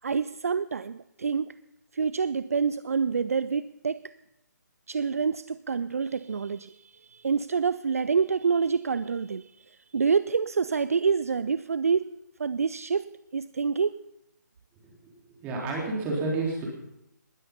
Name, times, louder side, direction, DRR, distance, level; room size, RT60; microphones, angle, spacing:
voice 1, 0.0-1.5 1.9-4.1 4.9-14.0, right 5 dB, 50° right, 16 dB, 0.4 m, -27 dB
voice 2, 15.4-16.7, right 3 dB, 15° right, -2 dB, 3.8 m, -29 dB
20.5 x 9.8 x 5.5 m, 0.85 s
figure-of-eight pair, 140°, 10 cm